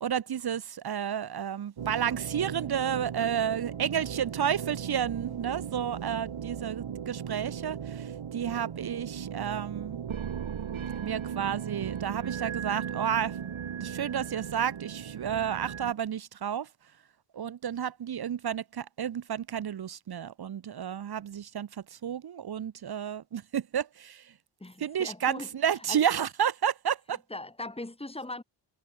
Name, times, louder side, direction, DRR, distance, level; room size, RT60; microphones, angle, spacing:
voice 1, 0.0-10.0 11.0-13.4 13.8-16.7 17.3-24.3 24.8-27.2, right 9 dB, 55° right, 0.8 m, -31 dB
sound 1, 1.8-15.9, right 8 dB, 80° right, 3.2 m, -37 dB
voice 2, 24.6-25.5 25.9-26.0 27.3-28.4, left 2 dB, 10° left, 3.5 m, -39 dB
wide cardioid pair, 110°, 47 cm